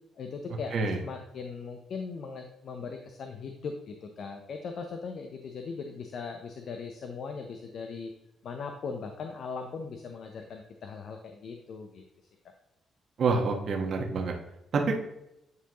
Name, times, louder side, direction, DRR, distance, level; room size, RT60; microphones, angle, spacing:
voice 1, 0.2-8.1 8.4-12.0, left 5 dB, 60° left, 5 dB, 0.7 m, -39 dB
voice 2, 13.2-14.3 14.7-14.9, right 4 dB, 60° right, 1 dB, 1.3 m, -27 dB
9.5 x 4.6 x 3.0 m, 0.87 s
cardioid pair, 90°, 0 cm